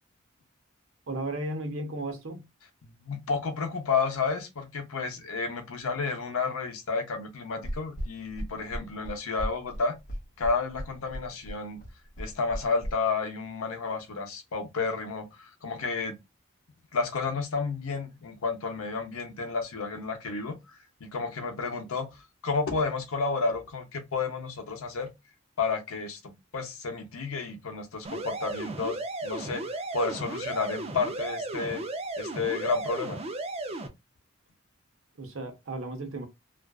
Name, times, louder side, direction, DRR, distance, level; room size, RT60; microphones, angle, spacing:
voice 1, 1.1-2.5 35.2-36.3, right 2 dB, 70° right, 0.7 m, -34 dB
voice 2, 2.8-10.0 10.4-11.8 12.2-16.2 16.9-20.6 21.0-22.1 22.4-25.1 25.6-29.6 29.9-31.8 32.2-33.2, left 4 dB, 85° left, 0.7 m, -31 dB
sound 1, 7.6-12.9, equal, 40° left, 0.7 m, -35 dB
sound 2, 28.0-33.9, right 2 dB, 30° right, 0.4 m, -35 dB
2.4 x 2.3 x 2.2 m
head